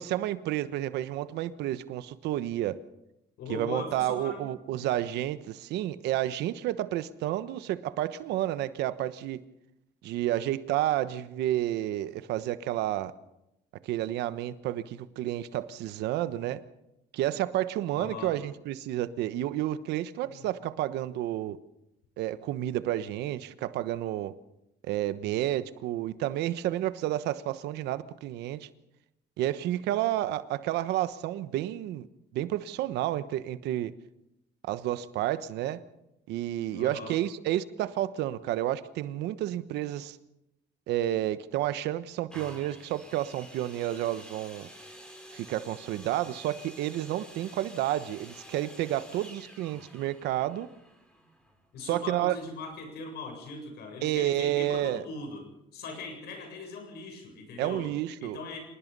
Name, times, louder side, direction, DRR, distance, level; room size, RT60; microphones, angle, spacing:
voice 1, 0.0-2.8 3.5-9.4 10.0-13.1 13.8-16.6 17.1-21.6 22.2-24.3 24.8-28.7 29.4-32.1 32.3-33.9 34.6-35.8 36.3-40.2 40.9-44.7 45.3-50.7 51.8-52.3 54.0-55.0 57.6-58.4, right 13 dB, 85° right, 13 dB, 1.2 m, -30 dB
voice 2, 3.4-4.5 4.8-4.9 17.9-18.3 20.3-20.5 36.7-37.2 51.7-55.5 55.7-57.9 58.2-58.6, left 3 dB, 75° left, 4 dB, 7.6 m, -40 dB
sound 1, 42.3-52.0 52.7-52.8, equal, 5° left, 5.6 m, -50 dB
26.0 x 19.5 x 5.4 m, 0.88 s
cardioid pair, 110°, 17 cm